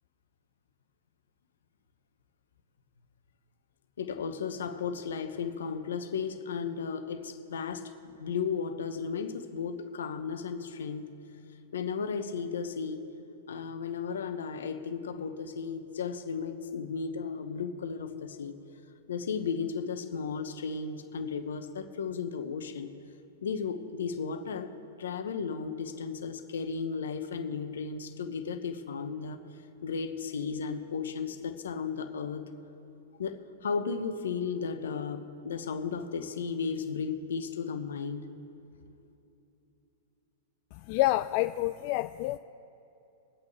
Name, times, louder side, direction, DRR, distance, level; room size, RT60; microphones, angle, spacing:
voice 1, 4.0-7.9 8.2-11.1 11.7-13.0 13.5-18.6 19.1-22.9 23.4-24.7 25.0-29.4 29.8-32.5 33.2-38.3, left 5 dB, 70° left, 8 dB, 1.0 m, -34 dB
voice 2, 40.9-42.4, left 17 dB, 45° left, 10 dB, 0.3 m, -28 dB
22.5 x 8.4 x 3.3 m, 2.9 s
hypercardioid pair, 105°, 0 cm